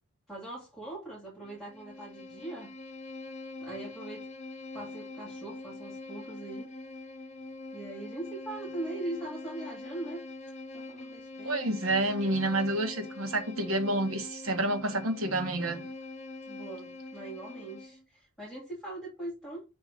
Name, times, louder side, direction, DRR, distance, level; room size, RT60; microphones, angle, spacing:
voice 1, 0.3-2.7 3.6-4.3 4.7-6.7 7.7-10.2 10.7-11.6 15.6-15.9 16.5-19.6, right 2 dB, ahead, 2.2 m, -41 dB
Bowed string instrument, 1.4-18.0, left 2 dB, 30° left, 0.9 m, -44 dB
voice 2, 11.4-15.8, right 1 dB, 80° right, 1.4 m, -29 dB
6.0 x 4.0 x 5.0 m
head